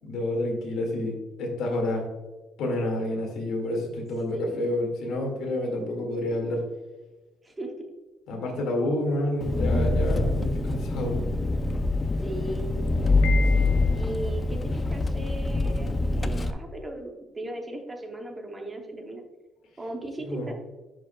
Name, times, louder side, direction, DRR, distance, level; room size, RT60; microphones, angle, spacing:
voice 1, 0.0-2.1 2.6-6.6 8.3-11.2 13.5-13.9 20.2-20.5, left 1 dB, 65° left, 1 dB, 1.9 m, -29 dB
voice 2, 4.3-4.7 7.4-7.9 12.2-12.8 13.9-19.2 19.8-20.5, right 1 dB, 15° right, 3 dB, 0.6 m, -37 dB
Engine, 9.4-16.5, left 2 dB, 15° left, 0.3 m, -25 dB
Piano, 13.2-14.3, left 5 dB, 90° left, 0.9 m, -35 dB
11.0 x 4.8 x 2.2 m, 1.2 s
cardioid pair, 180°, 0 cm